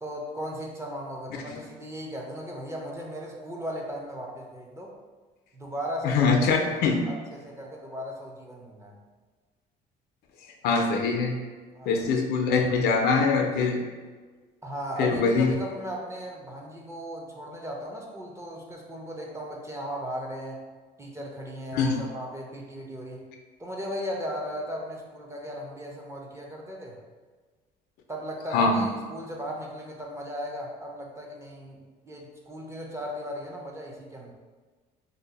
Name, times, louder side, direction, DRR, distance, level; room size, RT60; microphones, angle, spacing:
voice 1, 0.0-4.9 5.5-6.7 7.0-9.0 11.7-12.0 12.7-12.9 14.6-20.6 21.0-23.2 23.6-27.0 28.1-34.3, equal, 15° right, -1 dB, 0.5 m, -37 dB
voice 2, 6.0-7.0 10.6-11.4 11.9-13.8 15.0-15.5 21.7-22.0 28.5-28.9, left 4 dB, 75° left, 3 dB, 0.4 m, -23 dB
2.7 x 2.0 x 3.9 m, 1.4 s
cardioid pair, 110°, 17 cm